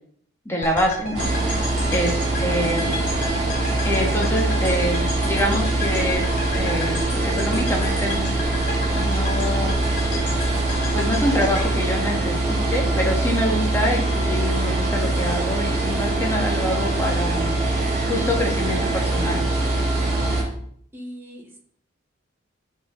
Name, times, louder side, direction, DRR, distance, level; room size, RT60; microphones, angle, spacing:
voice 1, 0.4-1.3 1.9-2.9 3.8-6.2 6.5-8.4 8.9-9.7 10.9-19.4, left 1 dB, 15° left, -1 dB, 1.8 m, -26 dB
sound 1, 0.6-12.8, left 1 dB, 40° left, 2.8 m, -32 dB
sound 2, 1.1-20.4, right 2 dB, 35° right, 3.2 m, -23 dB
voice 2, 1.4-1.9 19.9-20.6 20.9-21.6, equal, 10° right, -2 dB, 1.7 m, -39 dB
12.5 x 4.5 x 3.8 m, 0.62 s
head